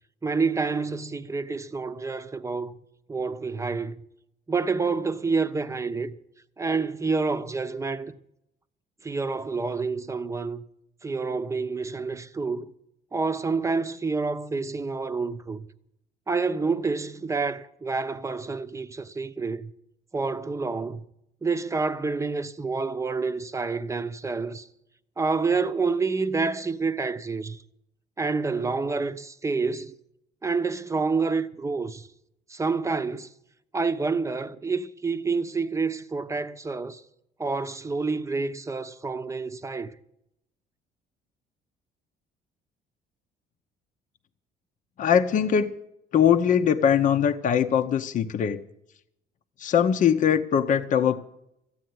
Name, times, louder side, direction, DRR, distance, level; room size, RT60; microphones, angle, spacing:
voice 1, 0.2-2.8 3.1-4.0 4.5-6.1 6.6-8.1 9.0-10.6 11.0-12.7 13.1-15.7 16.3-19.7 20.1-21.0 21.4-24.7 25.2-27.6 28.2-29.9 30.4-32.1 32.5-33.3 33.7-37.0 37.4-39.9, right 4 dB, 15° right, 0.8 m, -28 dB
voice 2, 45.0-45.7 46.1-48.6 49.6-51.2, left 8 dB, 50° left, 0.8 m, -21 dB
14.5 x 9.1 x 9.5 m
cardioid pair, 110°, 17 cm